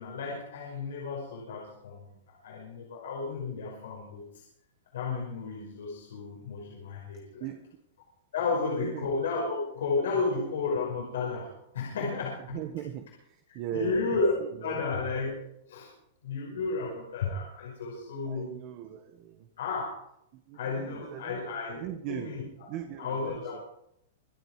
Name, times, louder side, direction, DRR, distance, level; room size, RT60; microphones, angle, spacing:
voice 1, 0.0-2.0 2.4-4.4 4.9-7.4 8.3-12.6 13.7-14.3 14.6-15.3 15.7-15.9 16.2-18.5 19.6-19.9 20.5-21.8 22.1-22.4 23.0-23.6, left 4 dB, 80° left, -2 dB, 5.5 m, -32 dB
voice 2, 12.5-14.1 14.4-14.8 18.3-19.5 20.3-21.4 21.8-22.4 22.7-23.6, right 11 dB, 35° right, 5 dB, 1.5 m, -39 dB
25.5 x 9.1 x 5.0 m, 0.76 s
supercardioid pair, 165°, 0 cm